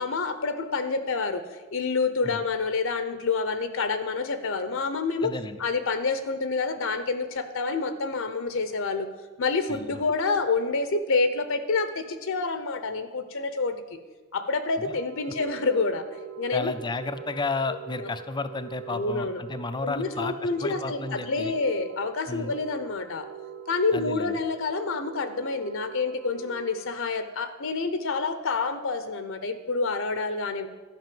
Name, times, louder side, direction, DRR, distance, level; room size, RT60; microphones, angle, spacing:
voice 1, 0.0-1.4 1.7-5.3 5.6-9.1 9.4-13.8 14.3-16.1 16.4-16.7 17.7-18.1 18.9-19.4 19.8-23.3 23.7-30.7, left 4 dB, 65° left, 10 dB, 0.8 m, -28 dB
voice 2, 5.2-5.6 9.7-10.0 16.5-21.5 22.3-22.6 23.9-24.4, left 3 dB, 20° left, 11 dB, 0.5 m, -32 dB
sound 1, 14.9-26.8, right 7 dB, 55° right, 0.8 m, -43 dB
12.0 x 5.5 x 7.7 m, 1.3 s
head